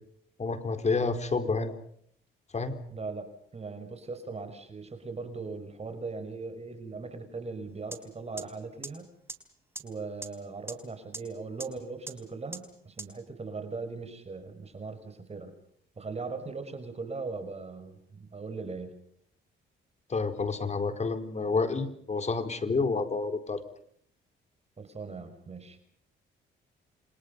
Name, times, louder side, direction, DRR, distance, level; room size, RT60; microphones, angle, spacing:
voice 1, 0.4-1.7 2.5-2.8 20.1-23.6, left 4 dB, 35° left, 8 dB, 4.3 m, -29 dB
voice 2, 2.9-3.3 3.5-9.1 9.8-15.5 16.0-18.9 24.8-25.8, right 4 dB, 30° right, 9 dB, 5.8 m, -39 dB
sound 1, 7.9-8.0 8.4-8.5 8.8-8.9 9.3-9.4 9.7-9.8 10.2-10.3 10.7-10.8 11.1-11.2 11.6-11.7 12.1-12.2 12.5-12.6 13.0-13.1, right 2 dB, 10° right, 4.3 m, -37 dB
29.5 x 26.5 x 5.4 m, 0.66 s
cardioid pair, 90°, 20 cm